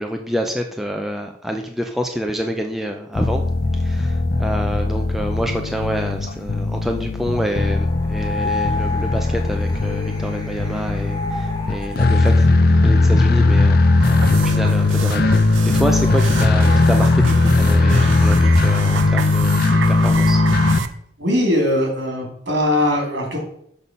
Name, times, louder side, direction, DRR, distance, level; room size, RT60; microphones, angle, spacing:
voice 1, 0.0-3.4 3.8-15.3 15.7-19.6 19.9-20.4, equal, ahead, 2 dB, 0.5 m, -27 dB
sound 1, 3.2-20.8, left 3 dB, 50° left, 0.5 m, -18 dB
sound 2, 7.8-20.0, left 3 dB, 20° left, 1.3 m, -33 dB
sound 3, 14.0-20.9, right 5 dB, 80° right, 0.6 m, -28 dB
voice 2, 21.2-23.4, left 1 dB, 60° right, 0 dB, 2.9 m, -20 dB
6.3 x 5.4 x 5.3 m, 0.70 s
head